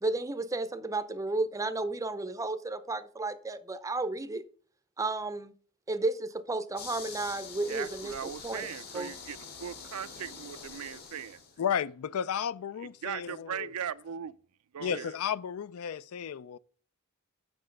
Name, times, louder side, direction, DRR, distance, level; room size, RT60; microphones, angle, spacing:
voice 1, 0.0-4.4 5.0-5.5 5.9-8.7 8.9-9.1, right 2 dB, 15° right, 0.5 m, -33 dB
sound 1, 6.8-11.6, left 5 dB, 50° left, 1.4 m, -45 dB
voice 2, 7.7-11.4 12.8-14.4 14.7-15.1, right 8 dB, 90° right, 0.4 m, -39 dB
voice 3, 11.6-13.7 14.8-16.6, left 8 dB, 75° left, 0.4 m, -33 dB
7.8 x 5.8 x 5.2 m
head